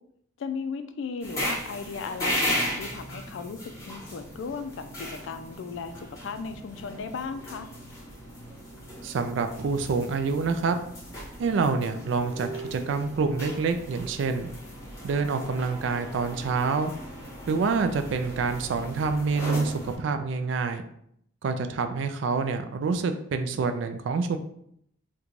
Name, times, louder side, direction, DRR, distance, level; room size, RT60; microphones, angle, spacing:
voice 1, 0.4-7.7, left 5 dB, 70° left, 9 dB, 0.3 m, -36 dB
sound 1, 1.2-20.0, equal, 15° left, 0.8 m, -36 dB
voice 2, 9.0-10.8 11.4-14.5 15.0-16.9 17.5-20.8 21.4-24.4, right 4 dB, 70° right, 8 dB, 0.3 m, -27 dB
3.0 x 2.2 x 3.8 m, 0.71 s
head